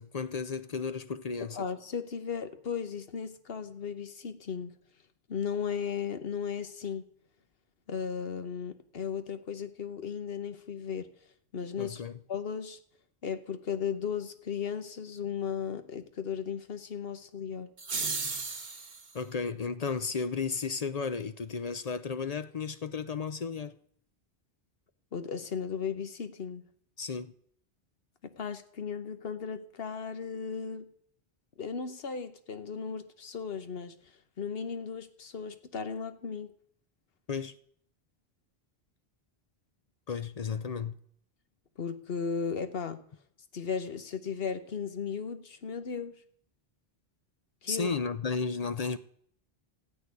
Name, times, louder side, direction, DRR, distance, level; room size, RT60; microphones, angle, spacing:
voice 1, 0.0-1.6 11.8-12.2 19.1-23.7 27.0-27.3 37.3-37.5 40.1-41.0 47.7-49.0, left 5 dB, 45° left, 0.6 m, -33 dB
voice 2, 1.4-4.8 5.3-7.1 7.9-11.1 11.5-12.0 12.3-12.8 13.2-17.7 25.1-26.6 28.2-30.9 31.6-36.5 41.8-43.0 43.5-46.1 47.6-47.9, left 6 dB, 65° left, 1.3 m, -36 dB
sound 1, 17.8-19.1, right 4 dB, 65° right, 1.7 m, -34 dB
14.0 x 6.6 x 9.6 m
omnidirectional pair, 1.1 m